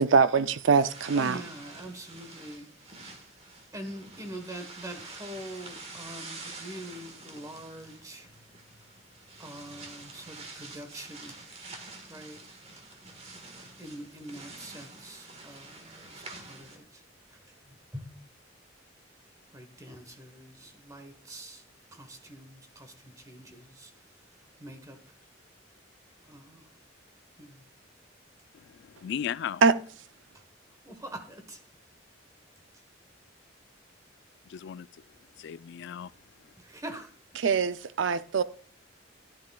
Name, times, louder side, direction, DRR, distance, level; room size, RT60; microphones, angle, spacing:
voice 1, 0.0-1.4 29.6-29.7 37.4-38.4, right 5 dB, 70° right, 0.5 m, -23 dB
sound 1, 0.7-16.8, right 3 dB, 35° right, 1.6 m, -47 dB
voice 2, 1.1-2.7 3.7-8.3 9.4-11.4 12.1-12.4 13.8-17.0 17.3-18.1 19.5-21.6 21.9-23.9 24.6-25.1 26.2-26.7 27.4-27.6 30.8-31.6 36.6-37.1, right 1 dB, 20° right, 1.2 m, -44 dB
voice 3, 28.5-29.6 34.5-34.9 35.4-36.1, left 8 dB, 65° left, 0.3 m, -36 dB
13.5 x 10.5 x 2.3 m
head